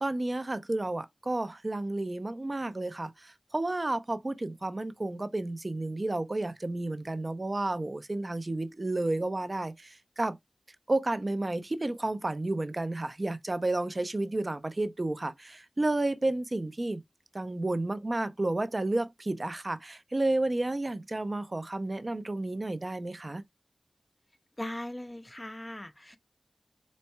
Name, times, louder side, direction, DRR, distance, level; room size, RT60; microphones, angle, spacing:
voice 1, 0.0-10.4 10.9-17.0 17.3-23.4, right 2 dB, 35° right, 0.6 m, -31 dB
voice 2, 24.6-26.2, left 1 dB, 15° left, 0.5 m, -39 dB
4.4 x 4.1 x 2.2 m
wide cardioid pair, 75°, 0 cm